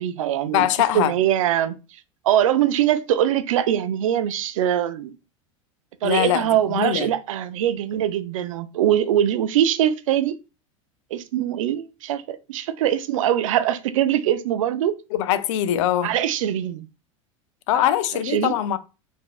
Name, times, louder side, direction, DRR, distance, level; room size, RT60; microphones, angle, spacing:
voice 1, 0.0-0.7 0.9-1.8 2.2-5.1 6.0-10.4 11.1-14.9 16.0-16.9 18.3-18.5, right 11 dB, 80° right, 0.5 m, -22 dB
voice 2, 0.5-1.1 6.0-7.1 15.1-16.1 17.7-18.8, left 11 dB, 70° left, 0.5 m, -22 dB
4.7 x 2.6 x 2.4 m
hypercardioid pair, 90°, 17 cm